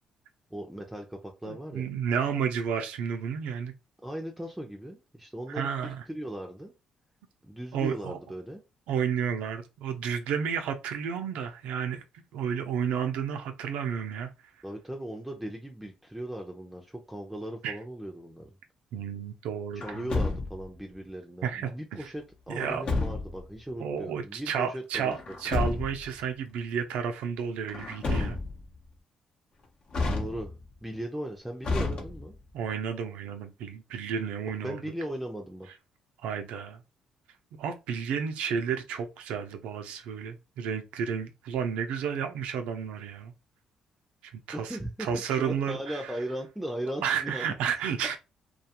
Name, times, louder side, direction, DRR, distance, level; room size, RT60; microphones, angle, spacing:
voice 1, 0.5-1.9 4.0-6.7 7.4-8.6 14.6-18.5 19.7-25.1 30.1-30.5 30.8-32.3 34.6-35.7 44.5-47.5, right 1 dB, 5° right, 0.5 m, -38 dB
voice 2, 1.4-3.7 5.5-6.0 7.7-8.2 8.9-12.0 12.3-14.3 17.6-17.8 18.9-20.2 21.4-21.7 22.0-22.1 22.5-22.9 23.8-28.4 32.5-34.8 36.2-36.8 37.5-43.3 44.2-46.1 47.0-48.2, right 7 dB, 90° right, 0.4 m, -32 dB
Truck, 19.8-20.8 22.6-23.5 25.1-26.1 27.7-28.7 29.9-30.7 31.6-32.5, left 3 dB, 55° left, 0.7 m, -31 dB
2.4 x 2.2 x 2.8 m
cardioid pair, 80°, 2 cm